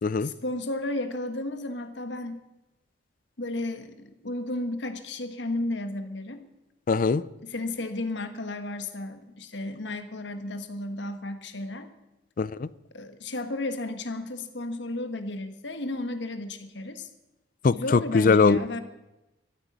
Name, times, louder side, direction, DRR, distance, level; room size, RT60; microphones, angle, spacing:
voice 1, 0.2-2.4 3.4-6.4 7.4-11.9 12.9-17.1 17.7-18.8, left 2 dB, 70° left, 9 dB, 1.4 m, -33 dB
voice 2, 6.9-7.2 12.4-12.7 17.6-18.6, left 4 dB, 45° left, 20 dB, 0.4 m, -21 dB
13.5 x 9.1 x 9.7 m, 0.97 s
head